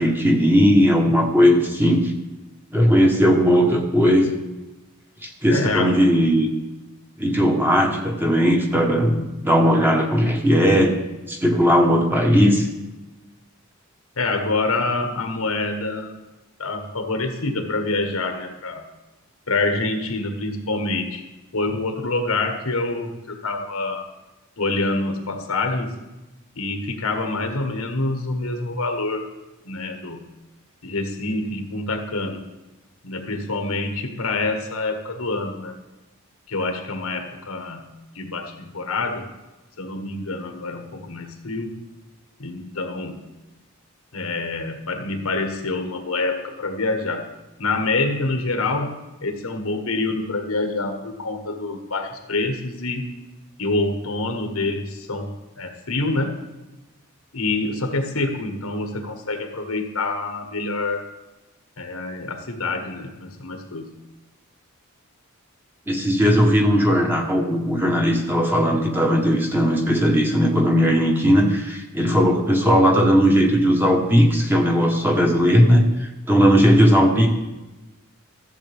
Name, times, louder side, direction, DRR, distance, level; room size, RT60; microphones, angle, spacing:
voice 1, 0.0-2.1 2.7-4.3 5.2-6.5 7.2-11.0 11.3-12.7 65.9-77.3, equal, 10° right, 1 dB, 1.1 m, -17 dB
voice 2, 5.5-6.0 14.2-16.2 16.6-18.9 19.5-21.2 21.5-24.1 24.6-26.0 26.6-29.3 29.6-30.2 30.8-32.5 33.0-35.8 36.5-37.9 38.1-39.3 39.8-41.7 42.4-43.2 44.1-47.3 47.6-53.1 53.6-56.4 57.3-61.1 61.8-63.9, left 2 dB, 85° left, 5 dB, 1.3 m, -26 dB
14.5 x 7.3 x 3.5 m, 1.1 s
head